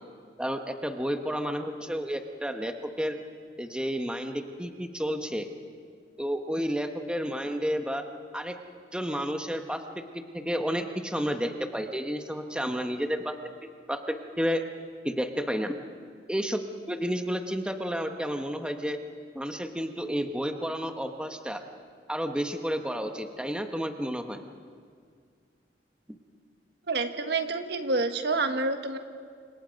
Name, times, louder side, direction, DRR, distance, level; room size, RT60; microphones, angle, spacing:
voice 1, 0.4-3.1 3.6-5.5 6.2-8.0 8.3-8.6 8.9-9.8 10.1-13.4 13.9-14.6 15.0-15.8 16.3-16.6 16.9-19.0 19.3-21.6 22.1-24.4, equal, 5° right, 5 dB, 1.2 m, -31 dB
voice 2, 26.9-29.0, right 3 dB, 65° right, 7 dB, 1.5 m, -28 dB
29.5 x 26.0 x 5.3 m, 2.1 s
head